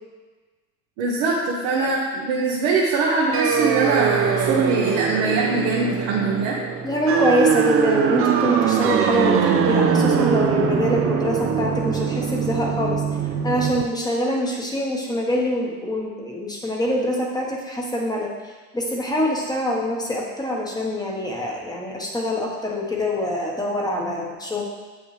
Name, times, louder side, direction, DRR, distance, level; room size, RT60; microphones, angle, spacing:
voice 1, 1.0-6.6, right 3 dB, 85° right, -5 dB, 1.2 m, -22 dB
sound 1, 3.3-13.8, right 7 dB, 40° right, 0.6 m, -22 dB
voice 2, 6.8-13.0 13.4-24.6, equal, 10° left, -1 dB, 1.1 m, -24 dB
7.6 x 5.5 x 3.3 m, 1.3 s
cardioid pair, 120°, 36 cm